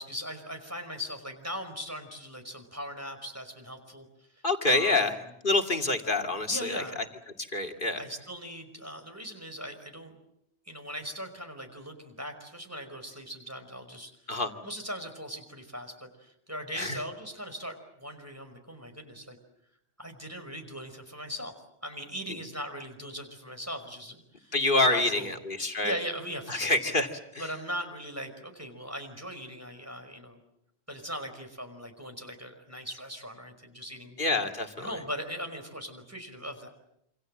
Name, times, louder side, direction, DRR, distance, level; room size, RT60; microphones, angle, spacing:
voice 1, 0.0-4.1 4.6-5.1 6.5-7.0 8.0-10.1 10.7-14.1 14.6-19.4 20.0-21.5 21.8-25.3 25.8-26.7 27.4-30.4 30.9-34.2 34.8-36.7, equal, 15° right, 5 dB, 5.3 m, -39 dB
voice 2, 4.4-5.2 5.4-7.0 7.4-8.0 14.3-14.5 16.7-17.0 24.5-26.0 26.5-27.5 34.2-35.0, left 2 dB, 50° left, 4 dB, 2.6 m, -27 dB
27.5 x 27.5 x 7.7 m, 0.75 s
omnidirectional pair, 1.1 m